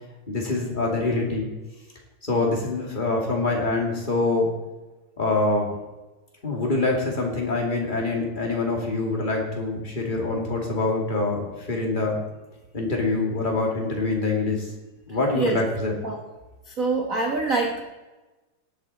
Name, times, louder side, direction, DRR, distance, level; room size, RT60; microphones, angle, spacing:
voice 1, 0.3-1.5 2.2-4.5 5.2-5.7 6.4-12.2 12.7-14.7 15.1-15.9, left 3 dB, 15° left, -1 dB, 2.2 m, -25 dB
voice 2, 16.7-17.8, right 3 dB, 80° right, 1 dB, 0.7 m, -25 dB
18.0 x 8.3 x 4.1 m, 1.1 s
omnidirectional pair, 3.4 m